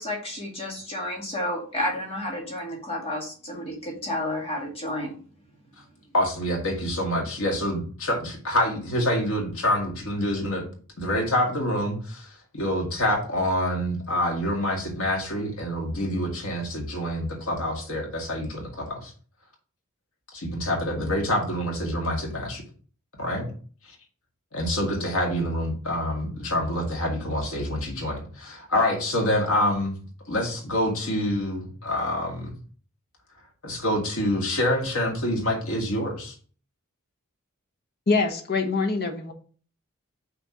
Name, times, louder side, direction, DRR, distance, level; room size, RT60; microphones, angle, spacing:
voice 1, 0.0-5.1, left 1 dB, 30° left, -1 dB, 2.0 m, -31 dB
voice 2, 6.1-10.6 11.0-19.1 20.3-22.6 23.2-23.5 24.5-30.0 30.3-32.5 33.6-36.4, left 1 dB, 80° left, 0 dB, 2.1 m, -26 dB
voice 3, 38.1-39.3, left 3 dB, 50° left, 4 dB, 1.0 m, -24 dB
5.9 x 3.4 x 5.7 m, 0.41 s
head